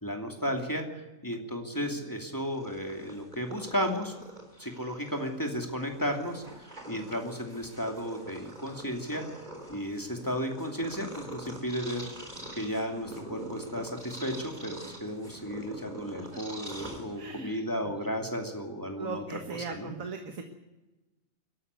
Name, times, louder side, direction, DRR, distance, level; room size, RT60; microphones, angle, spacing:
voice 1, 0.0-4.1 4.6-6.4 6.9-9.2 9.7-12.1 12.5-19.9, equal, 15° left, 3 dB, 2.6 m, -34 dB
Purr, 2.4-17.5, right 1 dB, 30° right, 3.7 m, -45 dB
voice 2, 17.2-17.9 19.0-20.4, right 4 dB, 80° right, 4 dB, 2.0 m, -39 dB
23.0 x 12.5 x 9.5 m, 1.1 s
omnidirectional pair, 1.4 m